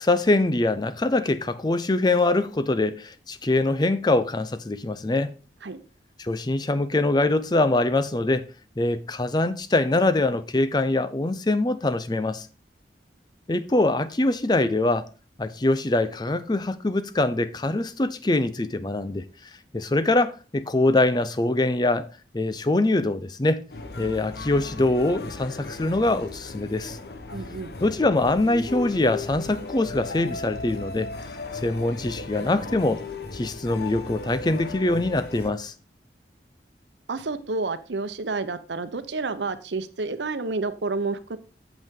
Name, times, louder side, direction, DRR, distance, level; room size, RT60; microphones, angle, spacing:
voice 1, 0.0-5.3 6.2-8.5 8.8-12.5 13.5-15.1 15.4-19.2 19.7-22.1 22.3-23.6 24.0-27.0 27.8-31.1 31.6-33.0 33.3-35.7, left 2 dB, 25° left, 0.5 m, -23 dB
sound 1, 23.7-35.5, left 3 dB, 65° left, 0.9 m, -36 dB
voice 2, 27.3-27.7 37.1-41.4, right 3 dB, 85° right, 0.8 m, -30 dB
8.2 x 7.1 x 3.7 m
head